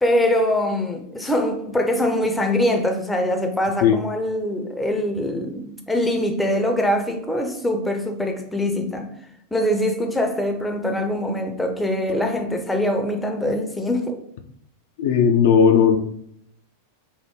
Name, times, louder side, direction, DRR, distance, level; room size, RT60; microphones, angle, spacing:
voice 1, 0.0-9.1 9.5-14.2, left 1 dB, 5° left, 0.6 m, -23 dB
voice 2, 15.0-16.0, left 7 dB, 55° left, 0.4 m, -16 dB
4.3 x 2.1 x 3.6 m
figure-of-eight pair, 90°, 0 cm